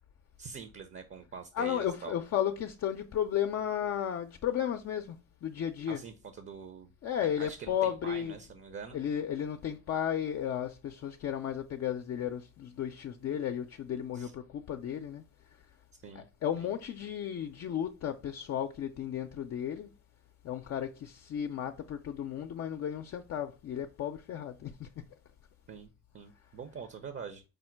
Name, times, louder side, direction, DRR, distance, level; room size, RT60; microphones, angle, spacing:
voice 1, 0.4-2.2 5.9-6.9 7.2-9.0 14.1-14.3 16.0-16.3 16.6-16.7 25.7-27.4, right 6 dB, 40° right, 0.6 m, -45 dB
voice 2, 1.5-5.2 5.4-6.0 7.0-8.4 8.9-15.2 16.1-19.9 20.4-24.9, left 9 dB, 55° left, 0.5 m, -34 dB
4.9 x 2.1 x 4.4 m
cardioid pair, 90°, 30 cm